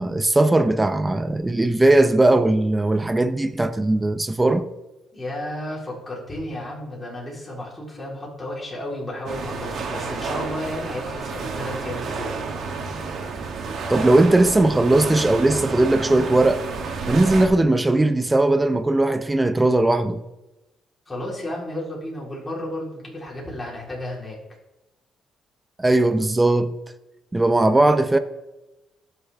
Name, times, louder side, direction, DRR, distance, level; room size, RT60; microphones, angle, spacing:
voice 1, 0.0-4.7 13.9-16.6 17.1-20.2 25.8-26.7 27.3-28.2, right 2 dB, 15° right, 0.8 m, -18 dB
voice 2, 5.1-12.3 21.1-24.4, left 1 dB, 20° left, 4.1 m, -32 dB
sound 1, 9.3-17.5, right 4 dB, 65° right, 2.6 m, -30 dB
20.0 x 6.9 x 3.7 m
cardioid pair, 90°, 0 cm